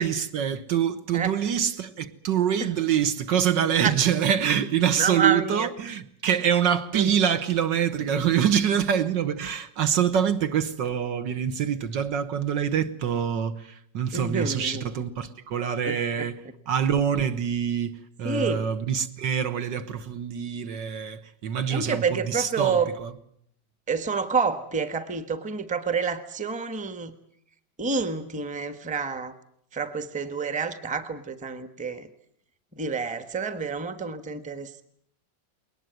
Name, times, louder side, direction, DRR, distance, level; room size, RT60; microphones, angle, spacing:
voice 1, 0.0-16.4 16.7-23.1, right 8 dB, 70° right, 1.9 m, -25 dB
voice 2, 3.6-3.9 5.0-5.7 6.9-7.1 8.1-8.2 14.1-14.9 15.8-16.3 18.2-18.7 21.7-22.9 23.9-27.2 27.8-29.3 29.7-32.1 32.7-34.8, right 5 dB, 5° right, 1.0 m, -28 dB
22.0 x 19.5 x 9.3 m
omnidirectional pair, 2.1 m